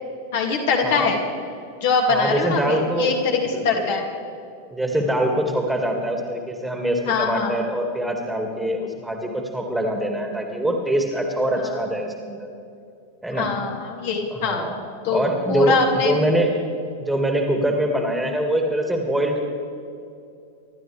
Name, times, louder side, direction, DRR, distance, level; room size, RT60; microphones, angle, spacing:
voice 1, 0.3-1.2 1.8-4.0 7.1-7.6 11.6-11.8 13.3-14.6 15.0-15.2 15.5-16.2, left 4 dB, 55° left, 0 dB, 2.5 m, -22 dB
voice 2, 2.1-3.1 3.5-3.9 4.7-12.5 13.2-13.5 14.3-14.8 15.1-16.5 17.0-19.5, right 1 dB, 5° right, 2 dB, 2.1 m, -24 dB
26.5 x 12.0 x 3.4 m, 2.5 s
figure-of-eight pair, 90°, 0 cm